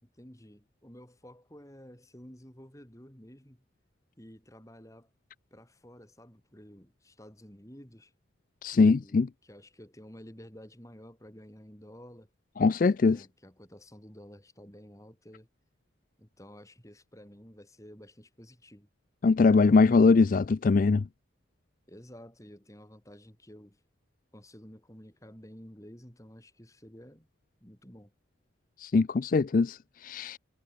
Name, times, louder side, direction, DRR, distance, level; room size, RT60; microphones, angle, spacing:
voice 1, 0.0-3.6 4.2-5.1 5.5-8.1 8.7-12.3 13.0-15.5 16.2-18.9 21.9-23.8 24.3-27.3 27.6-28.1, equal, 15° left, 3.9 m, -51 dB
voice 2, 8.6-9.3 12.6-13.2 19.2-21.0 28.8-30.4, left 4 dB, 45° left, 0.4 m, -22 dB
head